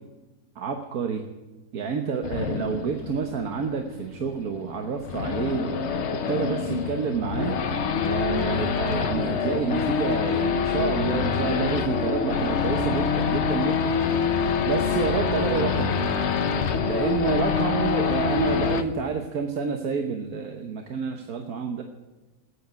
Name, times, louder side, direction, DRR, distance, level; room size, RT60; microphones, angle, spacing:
voice 1, 0.6-1.2 1.7-5.8 6.3-7.6 8.0-13.9 14.7-16.0 16.8-21.8, right 5 dB, 80° right, 4 dB, 1.6 m, -28 dB
Race car auto racing / Idling / Accelerating revving vroom, 2.2-18.8, left 6 dB, 55° left, 1.1 m, -26 dB
14.0 x 10.0 x 9.4 m, 1.1 s
omnidirectional pair, 1.5 m